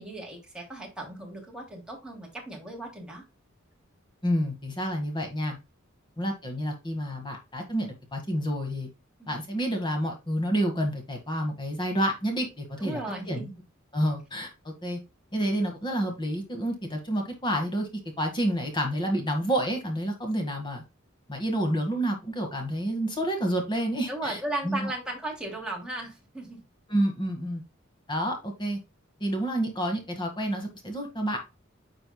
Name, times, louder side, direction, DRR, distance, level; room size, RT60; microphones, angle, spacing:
voice 1, 0.0-3.2 9.2-9.3 12.8-13.5 24.1-26.6, right 2 dB, 5° right, -2 dB, 2.8 m, -36 dB
voice 2, 4.2-5.6 6.2-8.9 9.3-13.0 13.3-13.5 13.9-15.0 15.3-17.9 18.2-20.8 21.3-24.9 26.9-27.6 28.1-28.8 29.2-31.4, equal, 25° left, 3 dB, 1.7 m, -29 dB
9.9 x 5.1 x 2.2 m, 0.26 s
head